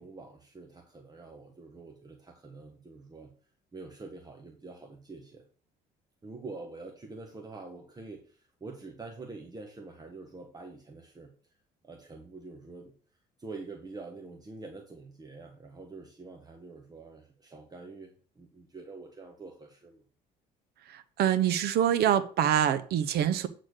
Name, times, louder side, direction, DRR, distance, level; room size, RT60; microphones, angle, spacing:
voice 1, 0.0-3.3 3.7-5.4 6.2-11.3 11.8-12.9 13.4-20.0, right 3 dB, 25° right, 1.4 m, -46 dB
voice 2, 20.9-23.5, right 10 dB, 70° right, 1.0 m, -25 dB
8.9 x 4.2 x 6.5 m
cardioid pair, 110°, 17 cm